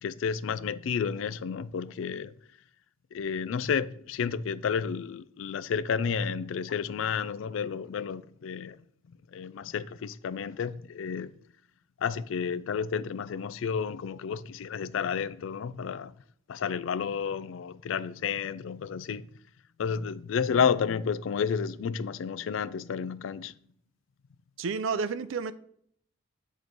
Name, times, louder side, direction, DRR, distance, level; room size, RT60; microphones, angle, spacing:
voice 1, 0.0-2.3 3.1-8.8 9.3-11.3 12.0-16.1 16.5-19.3 19.8-23.5, left 6 dB, 80° left, 0.3 m, -31 dB
voice 2, 24.6-25.5, right 5 dB, 80° right, 0.4 m, -30 dB
8.1 x 3.2 x 5.2 m
head